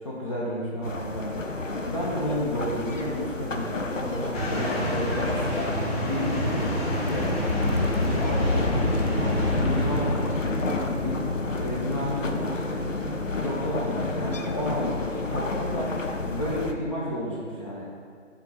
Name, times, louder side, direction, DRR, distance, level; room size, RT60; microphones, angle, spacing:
voice 1, 0.0-1.5 1.8-5.7 6.0-6.7 7.0-7.3 8.0-11.2 11.6-12.9 13.4-17.9, equal, 25° left, -7 dB, 0.8 m, -32 dB
sound 1, 0.8-16.7, left 2 dB, 90° left, 0.8 m, -29 dB
sound 2, 4.3-10.5, equal, 55° left, 1.7 m, -29 dB
7.3 x 3.8 x 5.6 m, 2.1 s
figure-of-eight pair, 150°, 37 cm